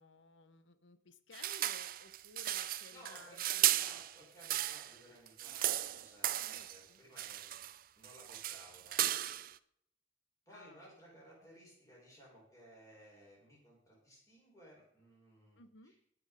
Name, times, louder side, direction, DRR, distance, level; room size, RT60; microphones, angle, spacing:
voice 1, 0.0-4.0 5.4-6.1 6.3-7.0 10.5-10.8 15.6-15.9, left 3 dB, 70° left, 12 dB, 1.0 m, -58 dB
sound 1, 1.3-5.0 5.3-6.8 7.2-7.8 8.0-9.5, right 13 dB, 45° right, 0.4 m, -35 dB
voice 2, 2.9-7.6 8.0-9.1 10.5-15.6 15.8-16.0, equal, 15° left, -4 dB, 5.3 m, -58 dB
17.5 x 6.3 x 5.0 m, 0.73 s
head